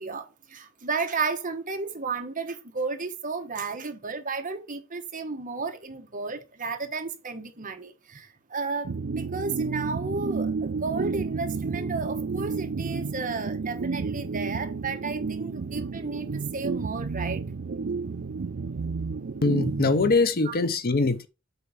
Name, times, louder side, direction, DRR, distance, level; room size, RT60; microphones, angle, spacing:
voice 1, 0.0-17.5 18.1-18.2 20.4-20.6, right 4 dB, 40° right, 1.2 m, -33 dB
sound 1, 8.8-20.7, right 4 dB, 55° right, 0.5 m, -31 dB
voice 2, 19.4-21.3, left 3 dB, 45° left, 0.7 m, -23 dB
7.8 x 3.9 x 5.7 m
head